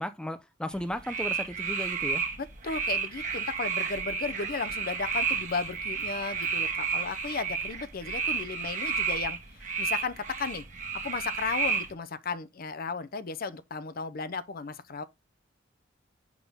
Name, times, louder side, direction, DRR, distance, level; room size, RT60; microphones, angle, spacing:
voice 1, 0.0-2.2, equal, 5° left, 0.5 m, -35 dB
sound 1, 0.7-11.9, right 5 dB, 40° right, 1.3 m, -32 dB
voice 2, 2.4-10.6 11.0-15.0, left 4 dB, 50° left, 0.6 m, -35 dB
6.1 x 5.5 x 3.5 m
head